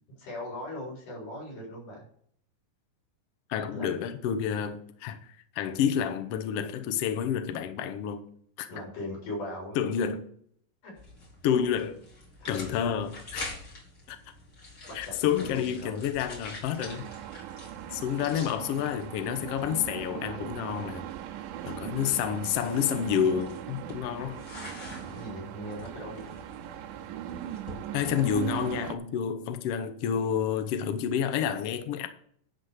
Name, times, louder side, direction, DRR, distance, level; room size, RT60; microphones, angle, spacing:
voice 1, 0.2-2.1 3.7-3.9 8.7-9.8 10.8-10.9 12.4-12.7 14.9-16.1 25.1-26.4, left 1 dB, 65° left, 5.8 m, -39 dB
voice 2, 3.5-8.2 8.6-8.7 9.7-10.2 11.4-12.0 12.5-13.5 14.1-14.2 14.9-17.1 17.9-21.1 21.6-24.4 27.9-32.1, left 8 dB, 80° left, 1.3 m, -29 dB
sound 1, 11.0-28.8, left 2 dB, 35° left, 3.2 m, -47 dB
sound 2, 16.8-29.0, right 11 dB, 80° right, 2.1 m, -39 dB
11.0 x 4.1 x 6.3 m
omnidirectional pair, 3.9 m